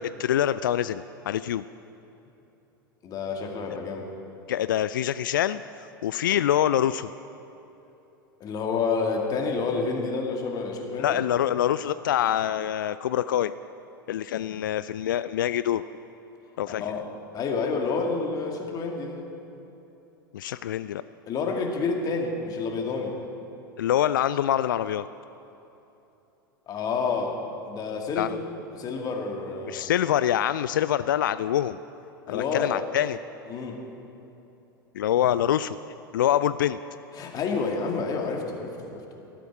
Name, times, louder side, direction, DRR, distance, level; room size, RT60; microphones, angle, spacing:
voice 1, 0.0-1.6 4.5-7.1 11.0-13.5 14.1-15.8 16.6-17.0 20.3-21.0 23.8-25.1 28.2-28.3 29.7-31.8 32.3-33.2 34.9-35.8 36.1-36.8, left 11 dB, 65° left, 15 dB, 0.4 m, -25 dB
voice 2, 3.0-4.1 8.4-11.2 16.8-17.1 17.3-19.2 21.3-23.2 26.7-27.4 27.7-28.4 28.7-29.9 32.3-32.8 33.5-33.8 37.1-39.2, left 4 dB, 35° left, 2 dB, 2.3 m, -29 dB
19.5 x 14.0 x 4.7 m, 3.0 s
figure-of-eight pair, 85°, 12 cm